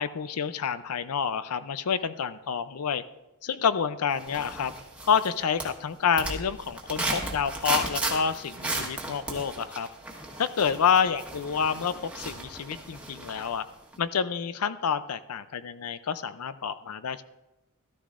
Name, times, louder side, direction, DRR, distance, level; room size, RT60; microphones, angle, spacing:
voice 1, 0.0-3.0 3.4-4.7 5.0-9.9 10.4-13.6 14.0-17.2, left 7 dB, 90° left, 13 dB, 0.5 m, -28 dB
sound 1, 4.2-5.3 5.6-13.6 13.9-14.0, right 2 dB, 5° right, 1.3 m, -35 dB
13.5 x 13.0 x 2.5 m, 0.99 s
head